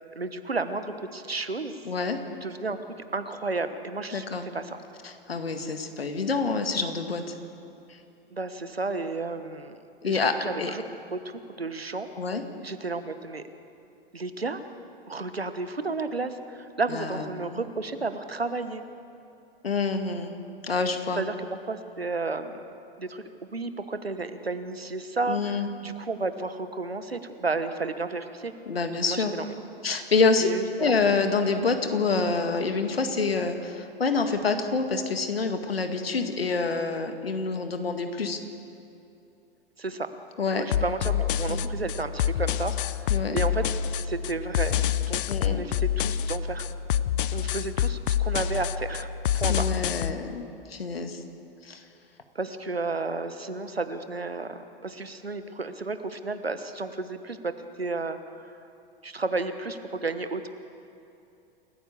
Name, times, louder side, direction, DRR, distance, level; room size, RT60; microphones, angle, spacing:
voice 1, 0.1-1.8 2.4-2.8 3.1-4.8 8.3-9.8 10.0-10.8 11.1-11.2 11.6-12.1 12.6-13.4 14.1-14.6 15.1-18.8 21.1-22.6 23.0-28.5 29.1-29.5 30.4-31.0 39.8-40.1 40.5-44.8 45.0-46.7 47.3-49.1 49.3-49.8 52.3-57.5 57.8-58.6 59.0-60.5, right 3 dB, 90° right, 10 dB, 1.3 m, -32 dB
voice 2, 1.9-2.2 4.1-4.4 5.0-7.2 10.0-10.3 10.6-10.7 12.2-12.4 16.9-17.6 19.6-20.4 20.6-21.2 25.3-25.7 28.7-29.4 29.8-30.5 30.8-38.4 40.4-40.6 41.5-41.7 43.1-43.4 45.3-45.6 49.5-51.2 51.6-51.8, left 4 dB, 80° left, 7 dB, 2.0 m, -27 dB
sound 1, 40.7-50.1, left 9 dB, 60° left, 0.7 m, -27 dB
28.0 x 14.5 x 7.1 m, 2.7 s
figure-of-eight pair, 95°, 29 cm